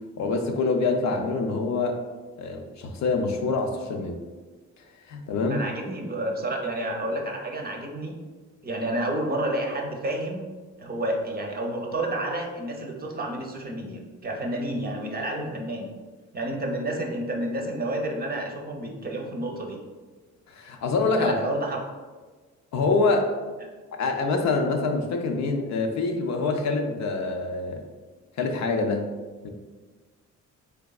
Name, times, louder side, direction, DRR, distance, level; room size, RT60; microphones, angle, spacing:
voice 1, 0.2-2.0 2.4-4.2 5.1-5.6 20.5-21.3 22.7-23.3 23.9-27.8 28.4-29.1, left 3 dB, 65° left, 3 dB, 0.6 m, -25 dB
voice 2, 5.5-8.1 8.6-10.4 10.8-15.9 16.3-19.8 21.2-21.8, right 1 dB, 30° right, 1 dB, 0.7 m, -30 dB
3.9 x 3.4 x 2.3 m, 1.3 s
cardioid pair, 90°, 30 cm